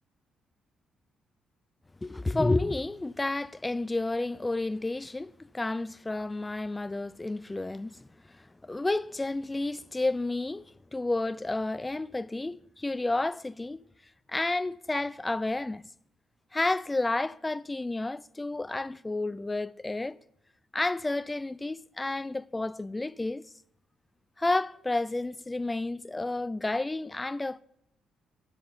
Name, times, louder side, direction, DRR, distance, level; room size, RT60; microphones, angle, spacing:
voice 1, 2.0-13.8 14.3-15.8 16.5-20.2 20.7-23.5 24.4-27.6, left 2 dB, 15° left, 0.3 m, -31 dB
12.5 x 9.7 x 4.1 m
cardioid pair, 90°, 0 cm